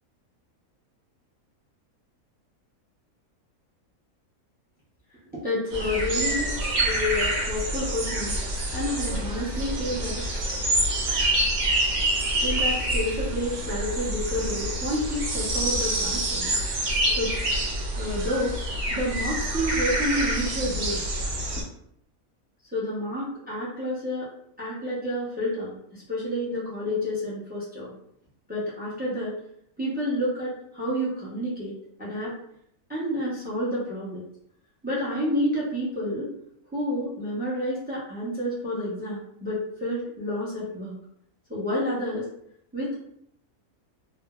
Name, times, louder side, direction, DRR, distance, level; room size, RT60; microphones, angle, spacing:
voice 1, 5.4-6.5 6.8-8.3 8.7-10.2 12.4-16.5 17.2-17.4 18.0-18.5 18.9-21.0 22.7-24.3 24.6-27.9 28.5-29.3 29.8-31.7 32.0-32.3 32.9-34.2 34.8-36.3 36.7-40.9 41.5-42.2 42.7-43.0, left 1 dB, 10° right, -7 dB, 0.5 m, -29 dB
sound 1, 5.7-21.6, right 1 dB, 80° right, 1.1 m, -27 dB
3.2 x 2.0 x 2.3 m, 0.71 s
omnidirectional pair, 1.5 m